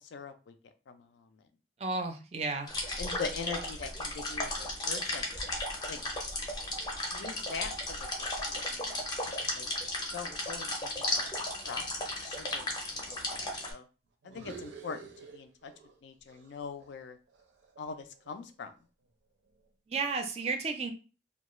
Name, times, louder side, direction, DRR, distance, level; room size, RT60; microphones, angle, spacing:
voice 1, 0.1-0.5 0.9-1.0 3.0-5.3 5.9-6.0 7.1-8.1 8.5-9.7 10.1-11.3 11.7-11.9 12.2-12.7 13.0-13.8 14.2-15.0 15.3-15.7 16.0-17.2 17.8-18.7, left 5 dB, 80° left, 8 dB, 0.4 m, -42 dB
voice 2, 1.8-2.7 19.9-20.9, right 4 dB, 35° right, 6 dB, 0.4 m, -32 dB
sound 1, 2.7-13.7, left 1 dB, 25° left, 0.5 m, -35 dB
sound 2, 14.2-16.0 16.3-18.5, right 5 dB, 90° right, 0.5 m, -50 dB
2.3 x 2.2 x 2.9 m, 0.34 s
head